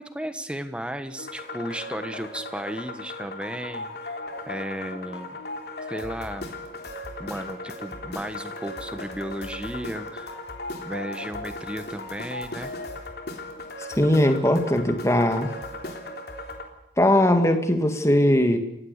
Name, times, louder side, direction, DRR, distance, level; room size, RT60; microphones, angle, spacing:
voice 1, 0.0-4.2 4.5-5.4 5.9-6.6 7.2-10.4 10.8-12.7, equal, 5° right, 9 dB, 1.3 m, -34 dB
sound 1, 1.2-16.6, left 2 dB, 55° left, 3.3 m, -37 dB
voice 2, 14.0-15.5 17.0-18.6, left 1 dB, 15° left, 6 dB, 2.0 m, -20 dB
29.5 x 16.0 x 6.7 m, 0.83 s
head